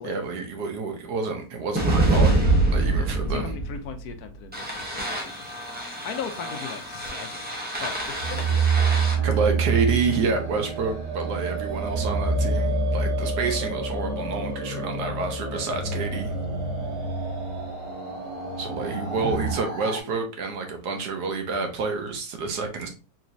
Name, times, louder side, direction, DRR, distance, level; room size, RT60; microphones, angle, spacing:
voice 1, 0.0-3.5 9.2-16.3 18.6-22.9, right 4 dB, 85° right, 5 dB, 1.4 m, -28 dB
sound 1, 1.8-19.5, right 3 dB, 10° right, 0.6 m, -26 dB
voice 2, 3.2-5.5 6.0-7.5 7.8-9.3 13.9-14.2 19.9-20.1, left 7 dB, 75° left, 8 dB, 1.1 m, -38 dB
sound 2, 7.8-20.0, right 4 dB, 30° right, 0.9 m, -36 dB
4.1 x 3.0 x 2.6 m, 0.33 s
omnidirectional pair, 1.7 m